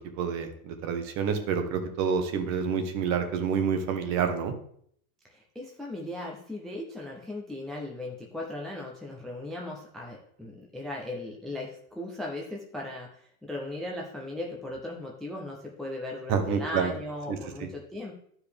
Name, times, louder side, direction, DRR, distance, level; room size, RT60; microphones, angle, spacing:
voice 1, 0.0-4.5 16.3-17.0 17.3-17.7, right 6 dB, 40° right, 7 dB, 1.1 m, -28 dB
voice 2, 5.3-18.1, left 1 dB, ahead, -1 dB, 0.4 m, -37 dB
11.5 x 4.8 x 3.4 m, 0.66 s
supercardioid pair, 145°, 42 cm